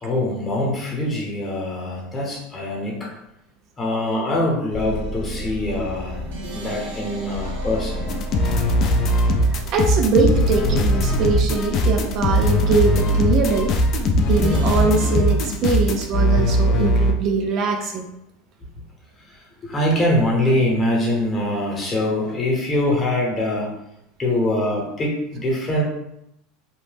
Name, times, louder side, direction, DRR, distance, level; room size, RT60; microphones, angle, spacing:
voice 1, 0.0-3.1 3.8-6.2 6.5-8.1 10.2-10.3 19.6-23.7 24.2-25.8, left 1 dB, 20° left, -2 dB, 0.9 m, -23 dB
sound 1, 4.7-14.9, equal, 90° right, 0.8 m, -32 dB
sound 2, 8.1-17.2, equal, 40° left, 0.4 m, -19 dB
voice 2, 9.5-13.7 14.3-18.1, right 4 dB, 45° right, 3 dB, 0.4 m, -22 dB
2.8 x 2.0 x 3.3 m, 0.80 s
supercardioid pair, 130°, 0 cm